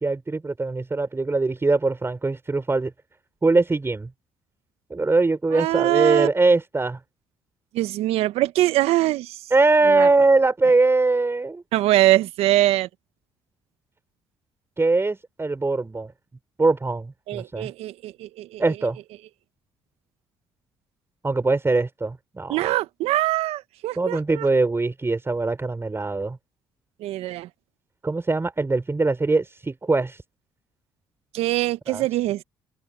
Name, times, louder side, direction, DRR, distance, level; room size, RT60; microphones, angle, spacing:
voice 1, 0.0-2.9 3.4-4.1 4.9-7.0 9.5-11.6 14.8-16.1 16.6-17.7 18.6-19.0 21.2-22.6 24.0-26.4 28.0-30.2 31.9-32.0, right 3 dB, 25° right, 4.0 m, -22 dB
voice 2, 5.5-6.3 7.7-9.4 9.9-10.1 11.7-12.9 17.3-18.6 22.5-24.5 27.0-27.5 31.3-32.4, right 15 dB, 75° right, 1.3 m, -23 dB
hypercardioid pair, 55°, 10 cm